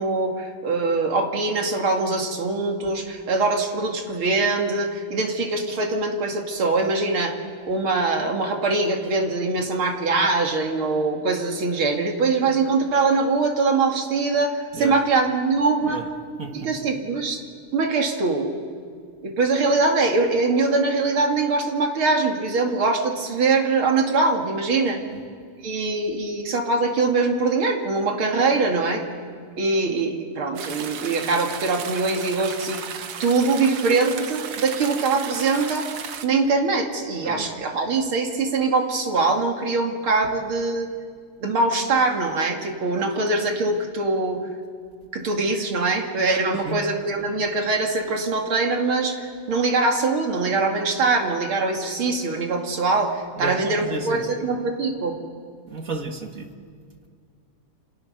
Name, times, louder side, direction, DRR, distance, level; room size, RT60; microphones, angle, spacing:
voice 1, 0.0-7.3 7.7-16.0 16.5-17.4 17.7-18.5 19.2-25.0 25.6-29.0 29.6-32.8 33.2-35.9 36.2-40.9 41.4-44.4 45.1-55.2, right 3 dB, 70° right, 2 dB, 3.1 m, -23 dB
voice 2, 16.4-16.7 25.0-25.2 37.2-37.6 46.6-46.8 53.4-54.5 55.7-56.5, right 3 dB, 40° right, 4 dB, 1.9 m, -33 dB
sound 1, 30.6-36.3, right 7 dB, 90° right, 2.2 m, -34 dB
28.0 x 28.0 x 6.7 m, 2.1 s
omnidirectional pair, 2.4 m